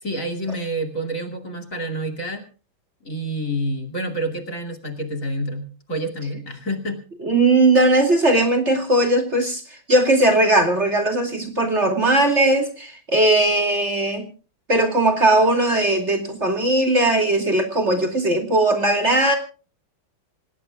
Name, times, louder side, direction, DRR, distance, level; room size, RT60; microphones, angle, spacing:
voice 1, 0.0-2.4 3.0-7.0, right 1 dB, 40° left, 3 dB, 2.8 m, -28 dB
voice 2, 7.2-14.3 14.7-19.4, right 2 dB, 35° right, 5 dB, 2.7 m, -18 dB
27.0 x 18.5 x 2.3 m, 0.38 s
omnidirectional pair, 2.2 m